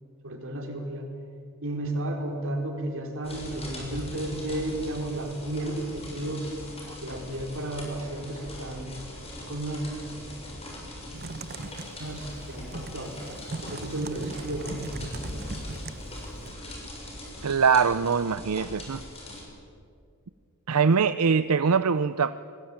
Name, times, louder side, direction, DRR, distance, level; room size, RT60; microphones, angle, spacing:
voice 1, 0.2-1.1 1.6-6.5 7.0-9.0 9.5-9.8 12.0-13.2 13.6-14.9, right 1 dB, 60° right, 3 dB, 4.6 m, -33 dB
sound 1, 3.2-19.4, left 1 dB, 25° left, 7.1 m, -41 dB
Typing, 11.1-16.5, right 3 dB, 45° right, 1.0 m, -40 dB
voice 2, 17.4-19.0 20.7-22.3, right 5 dB, 90° right, 13 dB, 0.6 m, -23 dB
29.0 x 21.0 x 8.9 m, 2.4 s
head